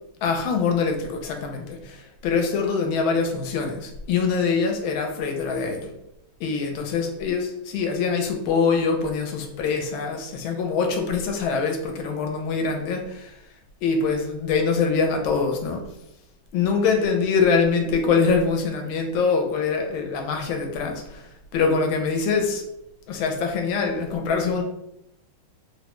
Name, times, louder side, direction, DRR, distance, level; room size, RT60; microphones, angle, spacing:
voice 1, 0.2-5.9 6.4-13.4 13.8-15.8 16.5-22.6 23.1-24.6, left 5 dB, 80° left, 3 dB, 1.4 m, -24 dB
3.6 x 2.1 x 2.9 m, 0.85 s
omnidirectional pair, 2.3 m